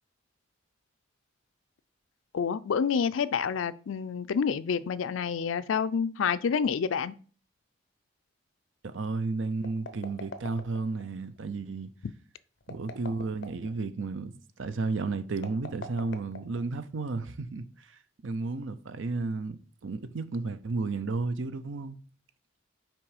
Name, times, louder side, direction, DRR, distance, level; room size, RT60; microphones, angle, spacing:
voice 1, 2.3-7.1, left 6 dB, 80° left, 0.4 m, -28 dB
voice 2, 8.8-11.9 12.7-17.9 18.2-22.0, right 3 dB, 75° right, 0.6 m, -33 dB
sound 1, 9.6-11.1 12.6-13.7 15.3-16.9, left 3 dB, 60° left, 0.8 m, -42 dB
6.0 x 4.5 x 4.9 m
head